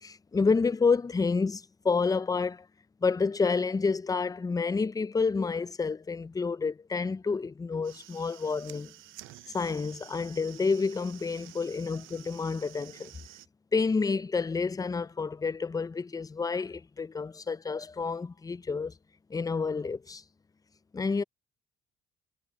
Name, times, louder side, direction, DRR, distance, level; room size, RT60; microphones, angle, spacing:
voice 1, 0.0-2.7 3.0-8.9 9.5-13.1 13.7-18.9 19.3-20.2 20.9-21.2, left 4 dB, 20° left, 0.4 m, -29 dB
sound 1, 7.7-13.5, right 15 dB, 85° right, 0.6 m, -51 dB
cardioid pair, 90°, 20 cm